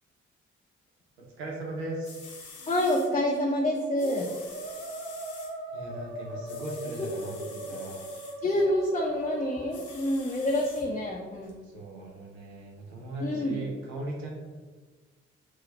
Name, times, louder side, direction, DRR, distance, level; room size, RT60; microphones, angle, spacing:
voice 1, 1.2-2.2 5.7-8.1 11.6-14.3, right 2 dB, 85° right, -1 dB, 0.7 m, -38 dB
sound 1, 1.7-1.8 2.0-3.1 4.0-5.5 6.4-8.3 9.7-10.8 11.5-11.6, left 4 dB, 65° left, 1.0 m, -47 dB
Musical instrument, 2.6-10.7, right 1 dB, 45° right, 0.8 m, -40 dB
voice 2, 2.7-4.3 7.0-7.1 8.4-11.6 13.2-13.7, left 1 dB, 20° left, -2 dB, 0.5 m, -27 dB
3.0 x 2.3 x 4.0 m, 1.4 s
hypercardioid pair, 45°, 31 cm